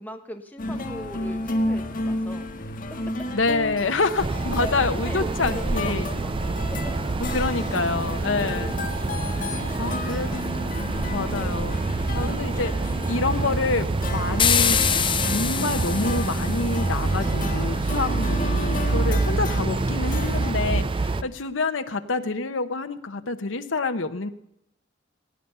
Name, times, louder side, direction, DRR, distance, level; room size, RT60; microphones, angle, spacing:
voice 1, 0.0-2.5 3.8-4.0 4.4-5.9 6.2-6.3 6.7-6.9 8.2-9.0 9.5-10.3 10.8-11.0 19.0-19.2 21.1-21.3, equal, 10° left, 4 dB, 1.2 m, -40 dB
sound 1, 0.6-20.5, left 2 dB, 45° left, 1.8 m, -33 dB
voice 2, 3.3-6.1 7.3-8.7 9.8-10.5 11.1-11.8 12.1-14.8 15.2-24.3, left 3 dB, 90° left, 8 dB, 0.9 m, -27 dB
sound 2, 4.2-21.2, right 3 dB, 25° right, 0.4 m, -26 dB
sound 3, 14.4-16.8, left 8 dB, 25° left, 0.7 m, -24 dB
17.5 x 9.6 x 5.6 m, 0.79 s
head